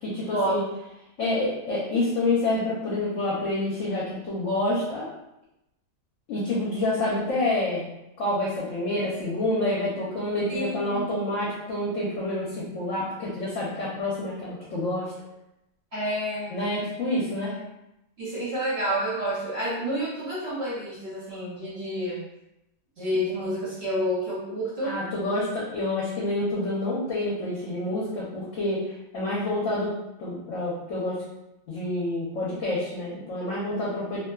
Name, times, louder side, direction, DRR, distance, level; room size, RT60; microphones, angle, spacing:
voice 1, 0.0-0.6 1.2-5.1 6.3-7.9 8.2-15.1 16.5-17.5 24.8-29.9 30.2-31.2 31.7-34.2, left 2 dB, 65° left, -6 dB, 0.9 m, -28 dB
voice 2, 10.5-11.1 15.9-16.6 17.5-17.6 18.2-22.2 23.0-25.0, equal, 60° right, -8 dB, 0.7 m, -29 dB
2.7 x 2.2 x 2.3 m, 0.87 s
omnidirectional pair, 1.7 m